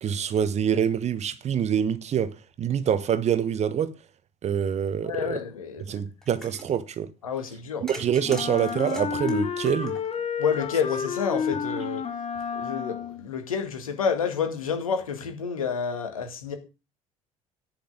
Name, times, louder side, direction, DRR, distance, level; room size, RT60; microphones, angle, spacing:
voice 1, 0.0-3.9 4.4-5.4 5.9-7.1 7.8-10.0, right 8 dB, 40° right, 1.2 m, -26 dB
voice 2, 5.0-6.0 7.2-7.8 10.4-12.0 12.5-16.6, left 6 dB, 75° left, 2.0 m, -29 dB
sound 1, 6.2-6.7 7.9-10.4, left 1 dB, 5° left, 3.7 m, -43 dB
Wind instrument woodwind instrument, 8.2-13.3, left 6 dB, 35° left, 2.1 m, -30 dB
10.5 x 5.7 x 7.3 m
figure-of-eight pair, 55°, 18 cm